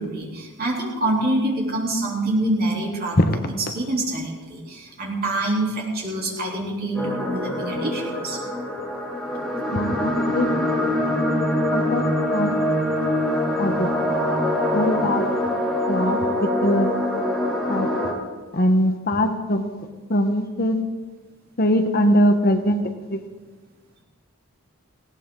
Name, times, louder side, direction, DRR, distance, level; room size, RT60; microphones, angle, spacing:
voice 1, 0.0-8.4, right 1 dB, 45° right, -2 dB, 3.4 m, -26 dB
sound 1, 6.9-18.1, left 1 dB, ahead, 2.6 m, -24 dB
voice 2, 9.7-10.5 11.7-12.5 13.6-13.9 14.7-15.3 15.9-16.2 16.6-16.9 17.7-17.9 18.5-19.7 20.1-20.8 21.6-22.8 23.1-23.2, equal, 45° left, 7 dB, 1.1 m, -21 dB
18.5 x 17.0 x 3.8 m, 1.3 s
head